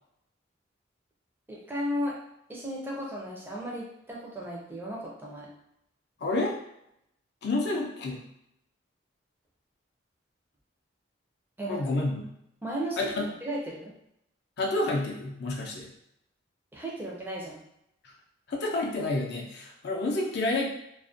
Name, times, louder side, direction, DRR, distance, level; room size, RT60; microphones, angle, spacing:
voice 1, 1.5-2.2 2.5-5.5 11.6-11.8 12.6-13.1 13.4-13.9 16.7-17.6, equal, 10° right, -4 dB, 0.4 m, -35 dB
voice 2, 6.2-6.6 7.4-8.2 11.7-12.2 13.0-13.3 14.6-15.9 18.5-20.7, left 2 dB, 55° left, 0 dB, 0.4 m, -29 dB
2.4 x 2.1 x 2.5 m, 0.77 s
head